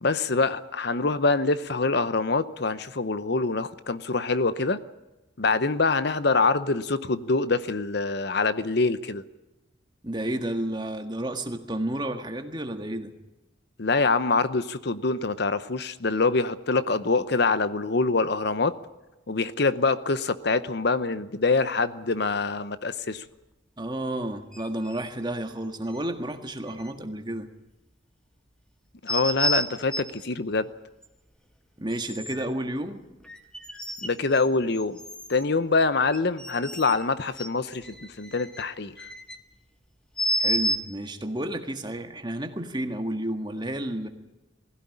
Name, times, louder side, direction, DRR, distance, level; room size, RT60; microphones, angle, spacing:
voice 1, 0.0-4.8 5.4-9.2 13.8-18.8 19.3-23.2 29.0-30.7 34.0-35.0 35.3-39.0, left 3 dB, 55° left, 14 dB, 0.8 m, -25 dB
voice 2, 10.0-13.1 23.8-27.5 31.8-33.0 40.4-44.1, right 1 dB, 20° right, 6 dB, 1.7 m, -31 dB
sound 1, 24.5-25.1 25.9-26.0 26.8-26.9 29.1-30.2 31.0-31.1 31.9-32.5 33.2-34.5 34.7-35.4 36.1-37.0 37.4-39.4 40.2-40.8, equal, 5° left, 1.7 m, -30 dB
21.0 x 16.0 x 9.8 m, 1.0 s
head